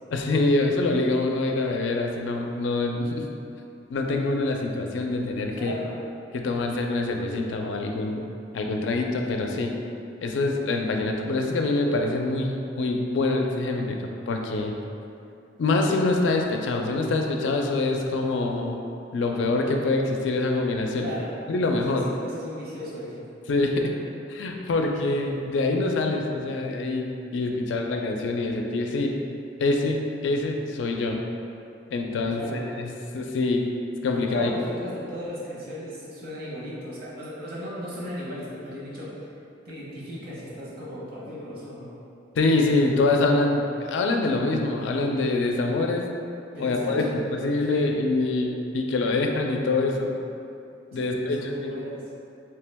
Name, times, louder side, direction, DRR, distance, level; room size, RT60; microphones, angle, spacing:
voice 1, 0.1-3.2 3.9-5.8 6.3-8.2 8.5-9.7 10.2-14.8 15.6-18.8 19.1-21.1 21.5-22.0 23.5-23.8 24.3-29.1 29.6-31.2 31.9-33.7 34.0-34.5 42.4-46.1 46.6-50.1 50.9-51.7, left 2 dB, 75° left, 2 dB, 0.4 m, -25 dB
voice 2, 5.5-6.0 21.0-21.4 21.9-23.2 32.3-32.7 34.1-39.2 39.6-41.9 46.5-47.2 47.7-47.9 50.9-52.0, equal, 55° right, -7 dB, 1.0 m, -36 dB
3.2 x 2.9 x 3.4 m, 2.6 s
head